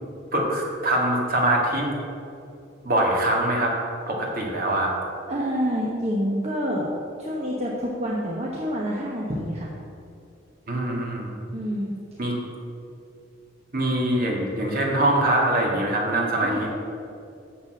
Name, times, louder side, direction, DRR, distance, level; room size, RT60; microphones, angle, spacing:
voice 1, 0.3-1.9 2.8-3.8 4.1-4.9 10.7-11.3 12.2-12.4 13.7-16.7, right 1 dB, 50° right, -2 dB, 2.0 m, -23 dB
voice 2, 5.3-6.9 7.2-9.7 11.5-11.9 16.4-16.6, equal, 35° right, -4 dB, 1.1 m, -27 dB
7.1 x 6.6 x 7.7 m, 2.5 s
head